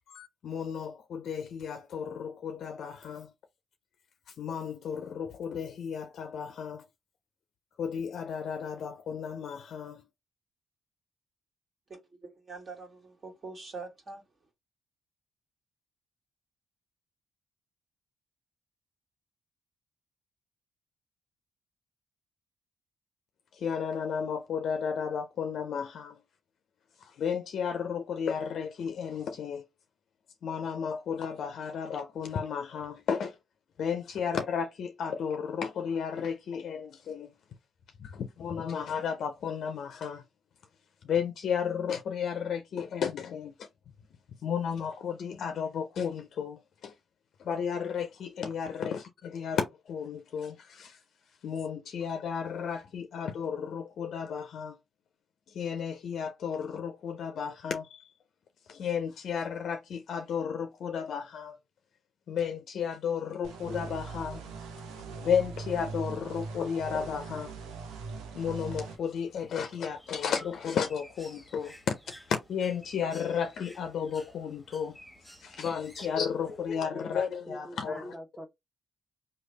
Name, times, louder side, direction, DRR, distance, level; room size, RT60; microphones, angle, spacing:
voice 1, 0.1-3.3 4.3-6.9 7.8-10.1 23.5-26.2 27.0-29.6 30.4-33.4 33.8-37.3 38.0-40.2 41.0-43.7 44.4-46.9 47.4-51.0 51.4-54.8 55.5-58.1 58.7-61.6 62.3-64.5 65.2-67.5 68.3-75.0 75.4-78.1, left 7 dB, 70° left, 0.4 m, -33 dB
voice 2, 11.9-14.2, right 4 dB, 45° right, 1.6 m, -44 dB
sound 1, 63.4-69.0, right 4 dB, 90° right, 0.6 m, -40 dB
Bird, 68.6-76.7, equal, ahead, 1.2 m, -54 dB
voice 3, 76.0-78.5, equal, 15° right, 0.8 m, -45 dB
3.2 x 2.2 x 3.1 m
supercardioid pair, 60°, 0 cm